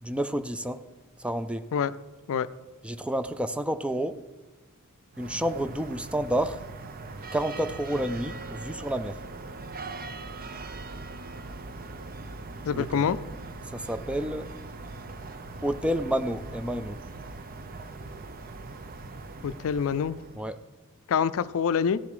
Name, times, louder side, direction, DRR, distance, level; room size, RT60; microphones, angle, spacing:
voice 1, 0.0-0.8 1.2-1.6 2.8-4.2 5.2-6.6 7.3-9.2 12.7-13.1 13.7-14.5 15.6-17.0 20.4-20.6, right 1 dB, 5° right, 0.3 m, -29 dB
sound 1, 5.1-20.6, right 3 dB, 40° right, 0.6 m, -41 dB
voice 2, 12.7-13.2 19.4-20.2 21.1-22.0, left 7 dB, 65° left, 0.4 m, -26 dB
16.5 x 7.0 x 5.0 m
head